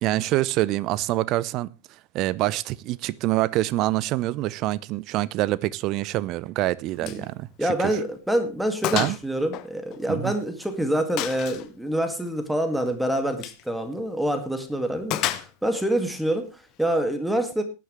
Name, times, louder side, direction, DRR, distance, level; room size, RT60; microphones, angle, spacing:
voice 1, 0.0-1.7 2.1-8.0 8.9-9.2 10.1-10.4, right 16 dB, 40° right, 0.7 m, -26 dB
Gunshot gunfire, 7.0-7.3 7.6-7.7 8.2-8.3 8.8-9.2 9.5-10.5 11.2-11.7 13.3-13.6 15.1-15.8, left 15 dB, 40° left, 1.1 m, -30 dB
voice 2, 7.6-17.6, right 1 dB, 5° right, 2.2 m, -26 dB
18.0 x 11.0 x 3.3 m
figure-of-eight pair, 90°, 0 cm